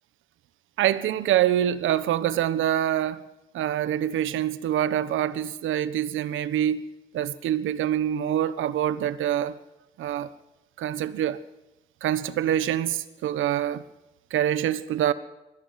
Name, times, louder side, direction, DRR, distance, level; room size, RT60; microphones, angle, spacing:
voice 1, 0.8-3.2 3.5-6.8 7.1-9.6 10.0-10.3 10.8-11.4 12.0-13.8 14.3-15.1, right 11 dB, 80° right, 1.3 m, -25 dB
21.5 x 15.0 x 9.4 m
cardioid pair, 90°, 20 cm